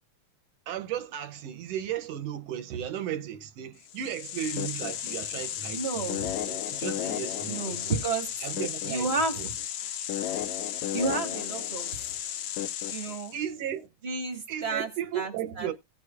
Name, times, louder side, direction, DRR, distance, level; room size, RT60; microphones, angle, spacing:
voice 1, 0.7-7.9 8.4-9.1 9.4-9.5 13.3-13.9 14.5-15.7, right 10 dB, 75° right, 1.5 m, -35 dB
sound 1, 3.9-13.5, left 11 dB, 75° left, 1.4 m, -33 dB
voice 2, 5.7-6.3 7.5-8.4 8.9-9.5 10.7-12.2 12.9-13.3 14.0-14.9 15.1-15.3 15.6-15.7, right 4 dB, 40° right, 0.9 m, -31 dB
17.0 x 6.1 x 2.3 m
omnidirectional pair, 3.4 m